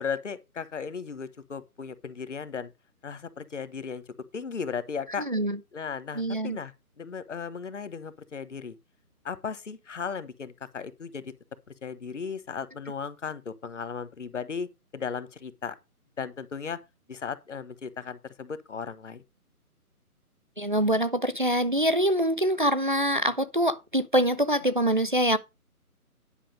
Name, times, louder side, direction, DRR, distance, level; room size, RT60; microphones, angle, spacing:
voice 1, 0.0-2.7 3.0-5.3 5.7-8.8 9.2-11.3 11.8-15.8 16.2-16.8 17.1-19.2, left 6 dB, 55° left, 1.2 m, -36 dB
voice 2, 5.3-5.6 6.1-6.6 20.6-25.4, equal, 35° right, 0.5 m, -24 dB
10.5 x 5.5 x 5.2 m
figure-of-eight pair, 150°, 45 cm